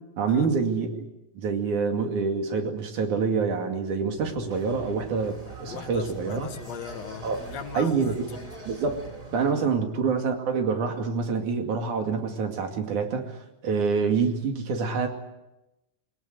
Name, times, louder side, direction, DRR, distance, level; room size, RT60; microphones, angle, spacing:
voice 1, 0.2-1.0 1.3-6.5 7.2-7.4 7.7-8.3 8.7-9.0 9.3-15.1, right 5 dB, 80° right, 4 dB, 3.8 m, -26 dB
sound 1, 4.1-9.4, right 6 dB, 45° right, 1.6 m, -46 dB
sound 2, 4.5-9.5, right 1 dB, 10° right, 2.5 m, -46 dB
voice 2, 5.7-8.5 9.5-9.7, left 7 dB, 65° left, 9 dB, 2.3 m, -39 dB
21.5 x 19.5 x 9.3 m, 0.96 s
omnidirectional pair, 3.4 m